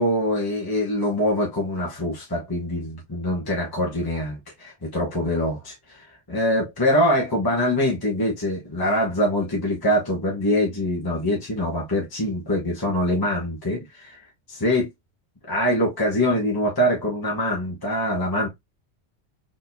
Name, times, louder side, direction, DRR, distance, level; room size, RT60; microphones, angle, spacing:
voice 1, 0.0-14.2 14.5-14.9 15.5-18.5, left 1 dB, 20° left, 1.3 m, -24 dB
4.3 x 3.8 x 2.8 m
omnidirectional pair, 1.2 m